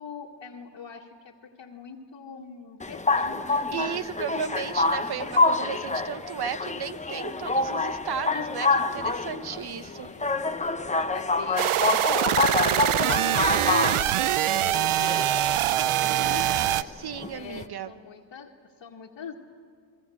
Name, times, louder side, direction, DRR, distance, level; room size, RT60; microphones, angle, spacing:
voice 1, 0.0-3.6 4.5-4.6 5.9-6.0 9.7-10.4 11.1-16.9 17.3-19.3, left 6 dB, 60° left, -3 dB, 2.0 m, -44 dB
sound 1, 2.8-17.6, left 3 dB, 15° left, 0.8 m, -27 dB
voice 2, 3.7-10.1 16.9-17.9, right 8 dB, 50° right, 12 dB, 1.1 m, -34 dB
sound 2, 11.6-16.8, right 13 dB, 85° right, 0.7 m, -24 dB
29.5 x 22.0 x 7.9 m, 2.1 s
cardioid pair, 115°, 49 cm